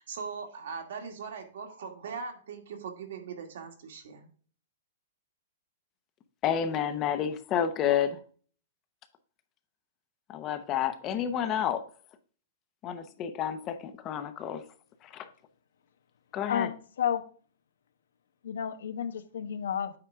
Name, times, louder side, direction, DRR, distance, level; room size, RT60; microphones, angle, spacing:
voice 1, 0.0-4.3, right 5 dB, 65° right, 2.1 m, -40 dB
voice 2, 6.4-8.2 10.3-11.8 12.8-14.6 15.1-15.3 16.3-16.7, left 9 dB, 20° left, 0.7 m, -30 dB
voice 3, 16.5-17.2 18.4-19.9, left 8 dB, 85° left, 1.0 m, -31 dB
8.7 x 4.9 x 3.6 m
hypercardioid pair, 170°, 0 cm